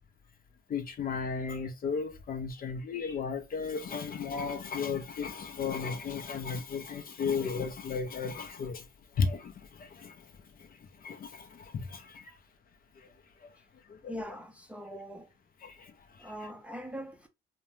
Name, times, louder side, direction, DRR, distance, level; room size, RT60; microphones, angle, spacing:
voice 1, 0.7-8.9 9.1-10.3 10.6-12.4 13.0-13.1 13.4-13.5 13.9-14.1 14.9-15.0 15.6-16.3, left 5 dB, 45° left, 0.5 m, -35 dB
voice 2, 14.1-15.3 16.2-17.3, equal, 5° right, 0.5 m, -42 dB
2.5 x 2.1 x 3.0 m
cardioid pair, 90°, 20 cm